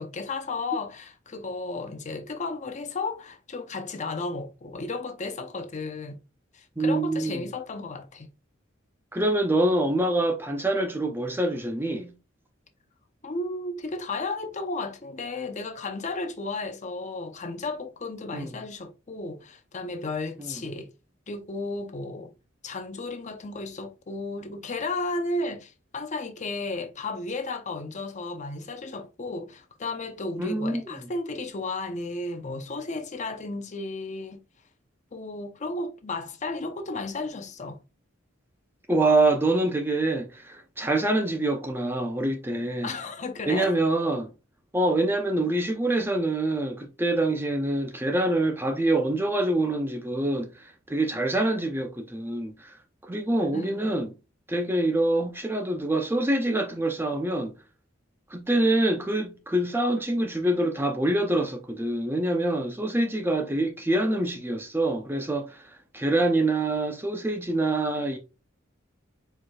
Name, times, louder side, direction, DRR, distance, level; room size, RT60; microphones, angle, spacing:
voice 1, 0.0-6.2 6.5-8.3 13.2-20.9 21.3-22.3 22.6-34.4 35.1-37.8 42.8-43.7 53.5-53.8, left 3 dB, 40° left, 0.7 m, -34 dB
voice 2, 6.8-7.4 9.1-12.1 18.3-18.5 20.4-20.6 30.4-31.1 38.9-42.9 43.5-44.3 44.7-52.7 53.0-54.1 54.5-57.6 58.3-68.2, right 2 dB, 10° right, 0.6 m, -25 dB
4.8 x 4.3 x 2.3 m
head